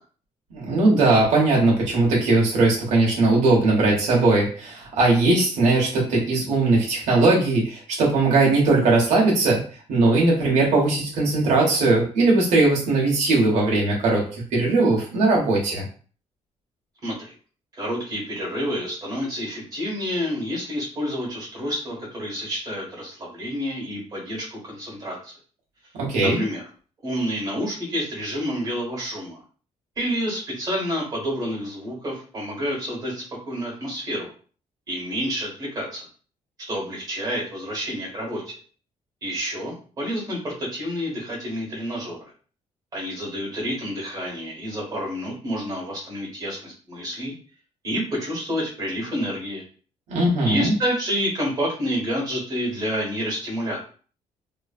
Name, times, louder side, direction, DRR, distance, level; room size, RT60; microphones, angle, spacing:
voice 1, 0.5-9.6 9.9-15.8 26.0-26.4 50.1-50.7, right 2 dB, 85° right, -3 dB, 1.1 m, -19 dB
voice 2, 17.0-17.3 17.8-25.3 26.2-26.6 27.0-29.4 29.9-34.3 34.9-36.0 36.7-38.5 39.2-42.3 42.9-47.3 47.8-49.6 50.4-53.8, equal, 35° right, -4 dB, 1.5 m, -29 dB
3.1 x 2.5 x 2.4 m, 0.40 s
cardioid pair, 160°, 12 cm